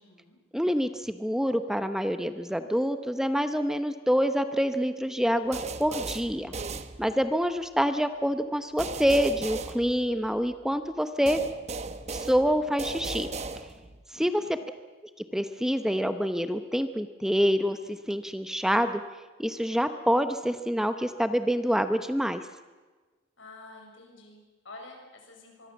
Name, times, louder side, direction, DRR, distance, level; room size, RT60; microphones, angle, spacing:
voice 1, 0.0-0.4 14.1-14.7 23.4-25.7, left 2 dB, 85° left, 2 dB, 6.6 m, -49 dB
voice 2, 0.5-6.5 7.0-11.4 12.1-13.3 14.1-14.4 15.3-19.0 19.4-22.5, equal, 5° right, 9 dB, 0.8 m, -26 dB
sound 1, 5.5-7.4 8.8-10.5 11.3-14.0, right 3 dB, 35° right, 1.0 m, -37 dB
24.5 x 23.0 x 7.2 m, 1.3 s
head